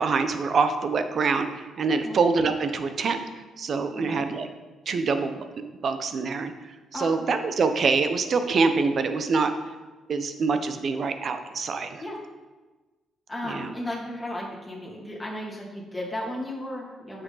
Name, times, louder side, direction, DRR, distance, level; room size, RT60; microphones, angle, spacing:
voice 1, 0.0-3.2 3.6-4.5 4.9-5.4 5.8-6.5 6.9-9.5 10.1-12.0 13.4-13.7, right 4 dB, 50° right, 8 dB, 0.8 m, -25 dB
voice 2, 3.9-4.3 6.9-7.1 9.4-9.5 12.0-12.2 13.3-17.2, left 1 dB, 5° left, -5 dB, 2.4 m, -34 dB
9.5 x 6.4 x 4.0 m, 1.2 s
cardioid pair, 90°, 0 cm